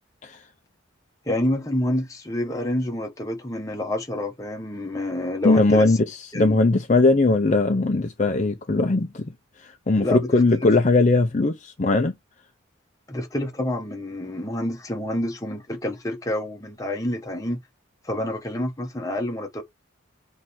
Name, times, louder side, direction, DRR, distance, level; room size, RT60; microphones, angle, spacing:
voice 1, 1.2-6.0 6.3-6.6 10.0-10.3 10.6-10.7 13.1-17.6 18.0-19.6, left 1 dB, 15° left, 1.1 m, -28 dB
voice 2, 5.4-9.3 9.6-12.1, left 2 dB, 35° left, 0.5 m, -20 dB
7.6 x 3.2 x 4.3 m
head